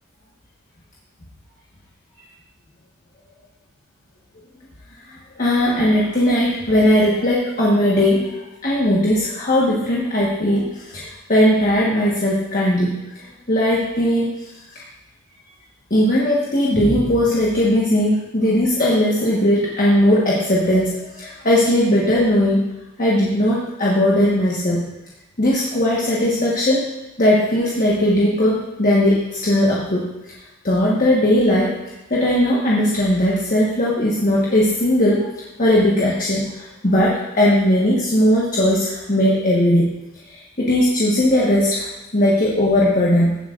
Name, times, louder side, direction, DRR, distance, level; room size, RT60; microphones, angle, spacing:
voice 1, 5.4-8.3 8.6-14.3 14.7-14.8 15.9-22.6 23.0-24.9 25.4-26.8 27.2-30.1 30.6-31.7 32.1-35.3 35.6-39.9 40.3-43.4, left 1 dB, 40° left, -5 dB, 1.3 m, -18 dB
15.5 x 8.1 x 2.5 m, 1.0 s
head